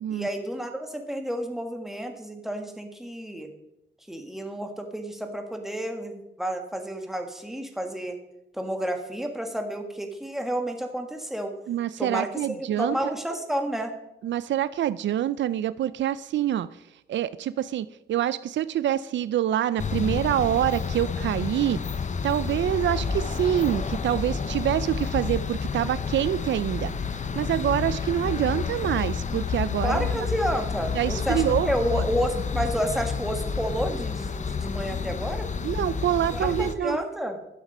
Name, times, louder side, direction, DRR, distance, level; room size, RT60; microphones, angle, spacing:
voice 1, 0.1-3.5 4.1-8.2 8.5-11.5 12.0-13.9 29.8-35.5 36.3-37.4, equal, ahead, 4 dB, 1.6 m, -30 dB
voice 2, 11.7-13.0 14.2-16.7 17.1-21.8 22.2-26.9 27.4-30.1 30.9-32.0 35.6-37.0, right 11 dB, 85° right, 16 dB, 0.4 m, -26 dB
sound 1, 19.8-36.7, left 5 dB, 40° left, 0.7 m, -30 dB
11.5 x 7.3 x 5.4 m, 0.87 s
cardioid pair, 95°, 18 cm